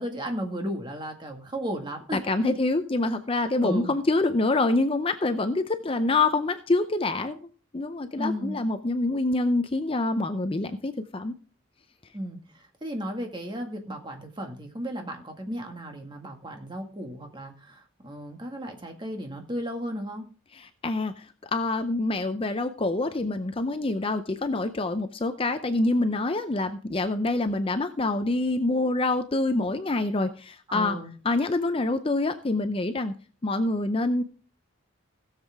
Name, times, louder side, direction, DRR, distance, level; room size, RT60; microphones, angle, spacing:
voice 1, 0.0-2.6 3.6-3.9 8.2-8.6 12.1-20.3 30.7-31.1, equal, 25° right, 3 dB, 1.9 m, -34 dB
voice 2, 2.1-7.4 7.7-11.3 20.5-21.3 21.5-31.0 31.2-33.1 33.4-34.2, left 2 dB, 25° left, 9 dB, 0.5 m, -26 dB
16.5 x 7.4 x 3.5 m, 0.39 s
head